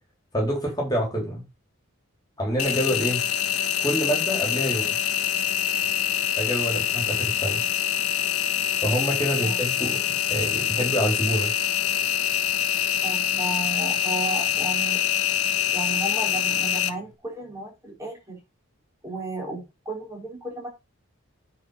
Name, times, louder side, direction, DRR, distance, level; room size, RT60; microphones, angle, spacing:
voice 1, 0.3-1.4 2.4-3.2 3.8-4.9 6.4-7.6 8.8-10.0 10.3-11.5, equal, 15° left, 0 dB, 3.6 m, -26 dB
Engine, 2.6-16.9, left 10 dB, 85° left, 1.0 m, -25 dB
voice 2, 13.0-15.0 15.7-18.4 19.0-20.7, right 2 dB, 15° right, -1 dB, 3.9 m, -33 dB
9.4 x 5.1 x 5.6 m, 0.24 s
head